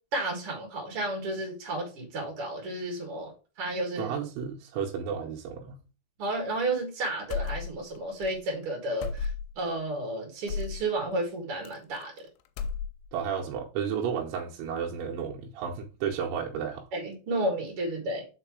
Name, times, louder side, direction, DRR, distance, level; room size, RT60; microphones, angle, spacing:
voice 1, 0.1-3.3 3.6-4.1 6.2-9.3 9.6-12.1 16.9-18.3, right 2 dB, 50° right, 1.9 m, -32 dB
voice 2, 4.0-5.8 13.1-16.9, right 7 dB, 85° right, 3.2 m, -32 dB
sound 1, 7.3-8.0 8.2-8.4 9.0-9.6 10.5-10.8 11.6-12.2 12.5-13.2, left 5 dB, 80° left, 2.5 m, -34 dB
5.8 x 4.7 x 4.8 m
omnidirectional pair, 5.1 m